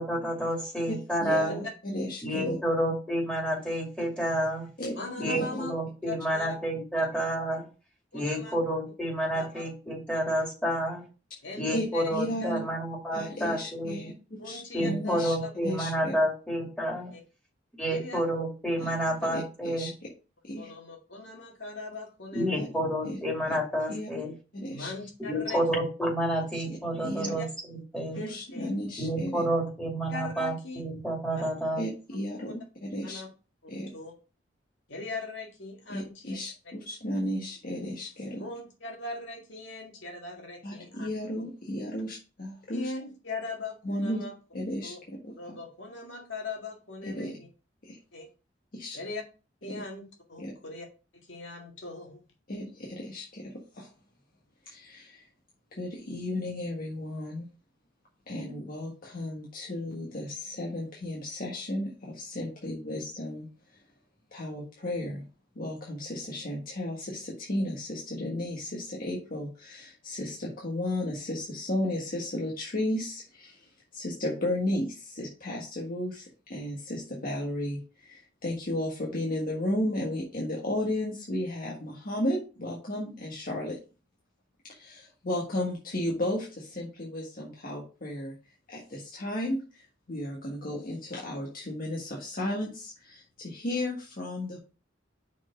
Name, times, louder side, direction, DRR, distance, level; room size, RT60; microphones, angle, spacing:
voice 1, 0.0-1.6 2.2-4.7 5.2-7.6 8.1-11.0 11.6-14.1 14.7-17.1 17.8-19.9 22.3-24.3 25.3-27.5 27.9-28.2 29.0-31.8, right 1 dB, 5° left, -2 dB, 2.4 m, -29 dB
voice 2, 0.9-2.6 4.8-5.6 11.7-12.6 13.1-14.1 14.4-15.3 15.6-16.1 18.8-18.9 19.3-19.9 20.4-20.7 22.5-22.7 23.0-23.2 23.9-24.1 24.5-24.9 27.0-27.3 28.1-29.4 31.8-33.2 33.7-33.9 35.9-38.4 40.6-42.9 43.8-44.2 44.5-45.3 47.0-47.4 47.8-48.0 48.7-49.0 49.7-49.8 50.4-50.5 52.5-53.9 54.6-55.2 55.7-57.4 58.3-63.4 64.3-65.2 65.5-83.8 84.6-88.3 88.7-94.6, left 1 dB, 50° left, -3 dB, 1.6 m, -34 dB
voice 3, 4.9-5.7 6.1-6.6 8.1-8.6 9.3-9.6 10.1-10.2 10.7-10.8 11.4-12.5 14.4-15.5 17.1-17.2 17.9-18.2 20.6-22.8 24.7-25.6 27.2-27.5 28.1-28.7 30.1-30.8 31.3-31.5 32.4-32.5 33.0-33.3 33.7-34.1 34.9-36.4 38.4-41.1 42.7-44.3 44.8-45.0 45.3-47.5 48.1-48.3 48.9-49.2 49.6-50.9 51.1-52.2, left 3 dB, 80° left, 1 dB, 1.9 m, -40 dB
6.2 x 4.4 x 5.2 m, 0.33 s
head